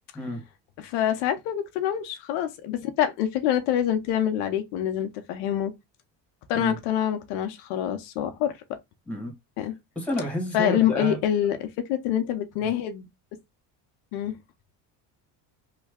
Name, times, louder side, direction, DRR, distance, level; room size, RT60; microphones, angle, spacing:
voice 1, 0.8-5.7 6.5-8.6 9.6-9.7 10.5-11.6 11.9-13.1 14.1-14.3, left 10 dB, 85° left, 0.8 m, -26 dB
voice 2, 9.9-11.2 12.6-12.7, left 1 dB, 5° left, 1.4 m, -30 dB
3.2 x 2.3 x 3.5 m
cardioid pair, 115°, 42 cm